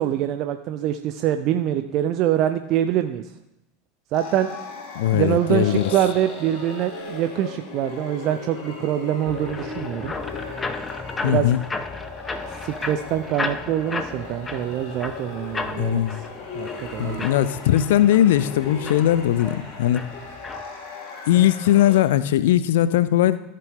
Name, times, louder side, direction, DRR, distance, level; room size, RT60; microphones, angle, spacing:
voice 1, 0.0-3.2 4.1-4.5 5.1-10.1 11.2-11.5 12.5-16.0 16.5-17.2, right 11 dB, 45° right, 9 dB, 0.5 m, -24 dB
sound 1, 4.1-22.0, left 4 dB, 40° left, 2.8 m, -37 dB
voice 2, 4.9-5.9 11.2-11.6 15.8-16.2 17.0-20.1 21.3-23.4, left 12 dB, 60° left, 15 dB, 0.5 m, -19 dB
sound 2, 9.3-20.6, left 3 dB, 15° left, 0.7 m, -34 dB
14.5 x 6.7 x 3.6 m, 0.90 s
figure-of-eight pair, 80°, 0 cm